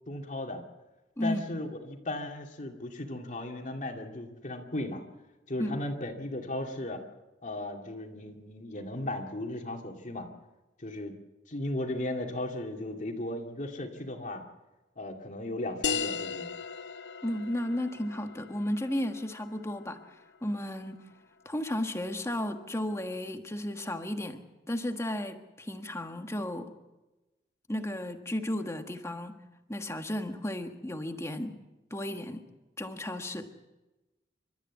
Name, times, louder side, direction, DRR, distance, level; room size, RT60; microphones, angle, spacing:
voice 1, 0.1-0.6 1.2-5.0 5.5-7.0 7.4-10.3 10.8-11.2 11.5-14.4 15.0-16.5, left 1 dB, 45° left, 3 dB, 2.3 m, -36 dB
sound 1, 15.8-20.9, left 6 dB, 80° left, 0.8 m, -37 dB
voice 2, 17.2-20.0 20.4-21.0 21.4-24.4 24.7-26.7 27.7-29.4 29.7-31.5 31.9-32.4 32.8-33.5, left 1 dB, 15° left, 6 dB, 1.5 m, -33 dB
29.5 x 13.5 x 8.3 m, 1.1 s
head